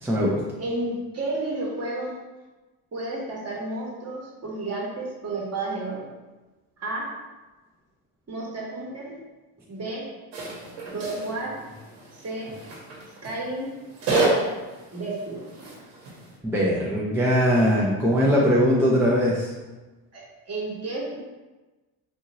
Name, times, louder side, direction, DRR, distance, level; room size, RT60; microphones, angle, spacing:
voice 1, 0.0-0.4 16.4-19.5, equal, 5° right, -6 dB, 0.4 m, -21 dB
voice 2, 0.6-2.2 2.9-6.1 6.8-7.1 8.3-9.2 9.7-10.0 10.9-11.6 12.1-12.5 12.9-13.7 14.1-14.5 14.9-15.4 20.1-21.2, right 2 dB, 35° right, -3 dB, 1.1 m, -31 dB
sound 1, 10.3-16.4, right 2 dB, 75° right, 1.2 m, -30 dB
2.8 x 2.5 x 2.8 m, 1.2 s
supercardioid pair, 80°, 45 cm